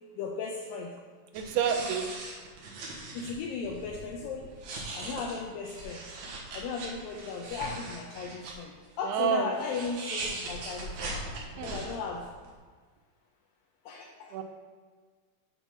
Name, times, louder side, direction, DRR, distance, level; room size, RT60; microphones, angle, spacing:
voice 1, 0.2-0.9 3.1-4.5 4.9-6.0 6.5-8.7 9.0-11.2 11.5-12.2 13.9-14.3, left 5 dB, 80° left, 0 dB, 2.2 m, -36 dB
sound 1, 1.3-3.3 3.8-3.9 4.5-8.5 9.6-12.3, right 3 dB, 60° right, 2.2 m, -39 dB
voice 2, 1.3-2.1 9.0-9.6 11.6-11.8 14.3-14.4, right 7 dB, 85° right, 5 dB, 2.7 m, -29 dB
7.1 x 5.4 x 6.0 m, 1.5 s
omnidirectional pair, 4.5 m